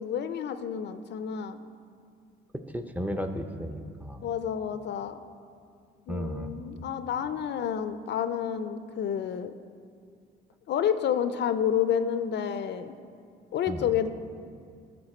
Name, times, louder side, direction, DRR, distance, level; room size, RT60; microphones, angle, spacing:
voice 1, 0.0-1.6 4.2-5.2 6.1-9.5 10.7-12.9 13.5-14.1, left 8 dB, 60° left, 11 dB, 0.4 m, -29 dB
voice 2, 2.7-4.2 6.1-6.6 13.7-13.9, equal, 10° right, 7 dB, 0.5 m, -34 dB
13.0 x 4.3 x 4.2 m, 2.3 s
cardioid pair, 90°, 20 cm